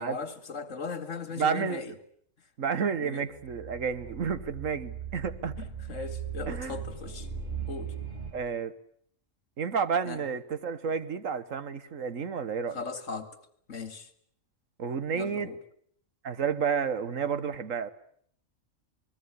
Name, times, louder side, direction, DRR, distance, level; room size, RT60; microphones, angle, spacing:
voice 1, 0.0-1.9 3.0-3.3 5.6-7.3 7.7-7.9 10.1-10.2 12.7-13.3 13.7-14.1 15.1-15.6, left 5 dB, 70° left, 2.3 m, -38 dB
voice 2, 1.4-1.8 2.6-5.6 6.4-6.8 8.3-8.7 9.6-12.8 14.8-15.5 16.2-17.9, right 6 dB, 75° right, 1.7 m, -31 dB
sound 1, 3.3-8.3, right 7 dB, 35° right, 7.5 m, -39 dB
28.5 x 20.5 x 8.4 m
omnidirectional pair, 1.4 m